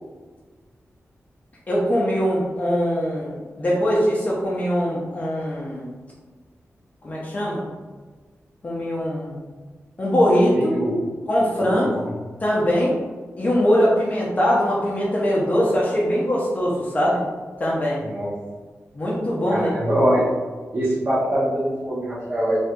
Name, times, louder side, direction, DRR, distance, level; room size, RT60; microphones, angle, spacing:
voice 1, 1.7-5.9 7.0-7.7 8.6-9.4 10.0-10.7 11.3-12.1 12.4-12.9 13.4-17.2 17.6-18.0 18.9-19.7, equal, 30° left, -5 dB, 0.5 m, -21 dB
voice 2, 10.5-11.0 11.7-11.9 18.1-18.3 19.5-20.3 20.7-22.6, right 1 dB, 35° right, -10 dB, 0.8 m, -23 dB
4.2 x 2.4 x 2.2 m, 1.4 s
wide cardioid pair, 180°, 5 cm